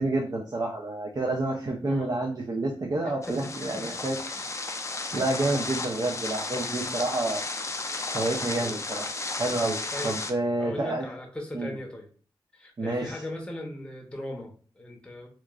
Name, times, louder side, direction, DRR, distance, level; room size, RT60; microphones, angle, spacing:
voice 1, 0.0-4.2 5.1-7.4 8.1-9.1 9.4-11.1 11.5-11.7 12.8-13.2, right 2 dB, 45° right, 1 dB, 0.5 m, -29 dB
voice 2, 3.0-3.9 5.1-5.5 8.6-8.8 9.9-10.1 10.6-12.1 12.5-15.3, left 1 dB, 10° left, 0 dB, 0.7 m, -39 dB
sound 1, 3.2-10.3, left 3 dB, 30° left, 0.4 m, -33 dB
2.9 x 2.3 x 2.3 m, 0.42 s
cardioid pair, 60°, 9 cm